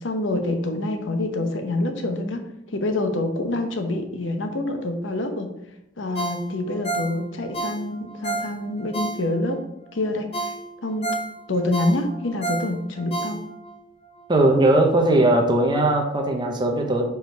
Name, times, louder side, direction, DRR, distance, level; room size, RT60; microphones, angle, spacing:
voice 1, 0.0-2.4 2.7-5.5 6.0-9.6 9.9-10.5 10.8-11.1 11.5-13.4, left 2 dB, 65° left, 6 dB, 0.8 m, -26 dB
Ringtone, 6.1-9.6 10.0-10.1 10.3-13.8 14.2-14.3, right 2 dB, 30° left, 0.8 m, -31 dB
voice 2, 14.3-17.0, right 1 dB, 25° right, 3 dB, 0.8 m, -19 dB
5.1 x 4.7 x 4.6 m, 0.85 s
head